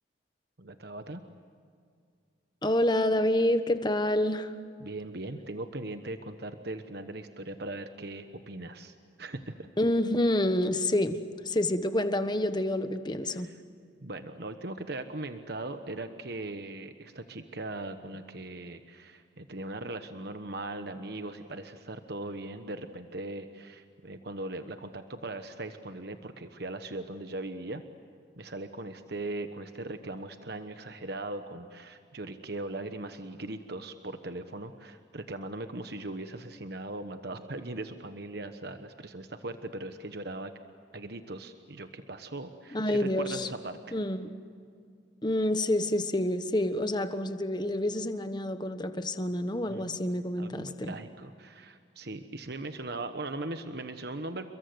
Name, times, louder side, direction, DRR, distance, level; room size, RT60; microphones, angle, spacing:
voice 1, 0.6-1.2 4.8-9.5 13.3-13.6 14.0-27.8 28.4-40.5 40.9-43.9 49.7-50.0 50.4-54.5, right 2 dB, 55° right, 8 dB, 1.2 m, -39 dB
voice 2, 2.6-4.5 9.8-11.2 11.4-13.5 42.7-43.5 43.9-44.3 45.2-50.9, left 1 dB, 25° left, 9 dB, 1.3 m, -28 dB
29.5 x 22.5 x 8.0 m, 2.2 s
head